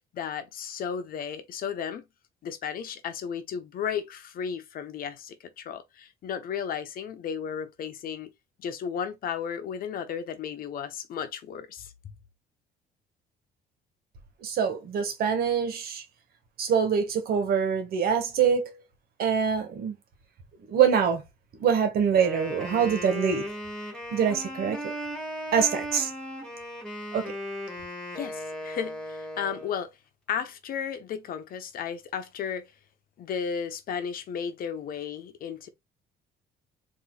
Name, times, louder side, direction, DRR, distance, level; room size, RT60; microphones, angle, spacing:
voice 1, 0.1-2.0 2.4-8.3 8.6-11.9 28.1-29.9 30.3-32.7 33.2-35.7, left 7 dB, 60° left, 1.0 m, -34 dB
voice 2, 14.4-16.0 16.6-18.8 19.2-20.0 20.7-21.2 21.6-23.4 24.1-24.9 25.5-26.1 27.1-27.3, right 7 dB, 65° right, 1.8 m, -24 dB
Wind instrument woodwind instrument, 22.1-29.8, equal, 5° left, 1.8 m, -36 dB
4.2 x 3.0 x 4.1 m
cardioid pair, 110°, 17 cm